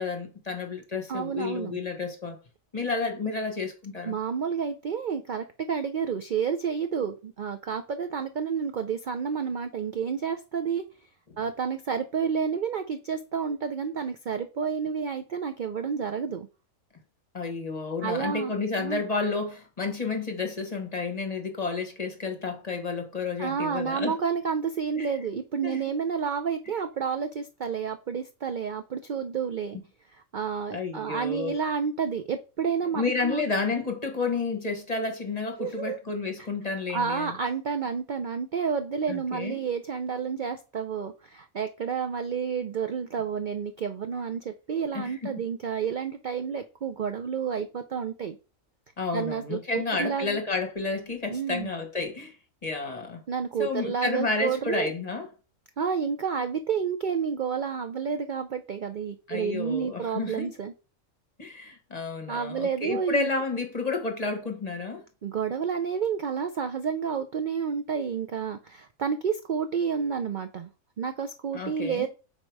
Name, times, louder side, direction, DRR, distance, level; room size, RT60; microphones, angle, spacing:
voice 1, 0.0-2.4 2.7-4.1 17.3-24.1 25.0-25.1 25.6-25.8 30.7-31.5 32.9-37.4 39.1-39.6 44.9-45.3 49.0-52.3 52.6-53.2 53.6-55.3 59.3-60.5 61.4-65.0 71.5-72.1, left 4 dB, 30° left, 1.1 m, -31 dB
voice 2, 1.1-1.8 4.0-10.9 11.4-16.5 18.0-19.0 23.4-29.8 30.1-33.4 35.6-36.0 36.9-48.4 49.1-50.4 51.3-51.7 53.3-54.9 55.8-60.7 62.3-63.3 65.2-70.7 71.0-72.1, right 6 dB, 55° right, 0.5 m, -30 dB
6.4 x 4.5 x 4.6 m
omnidirectional pair, 1.4 m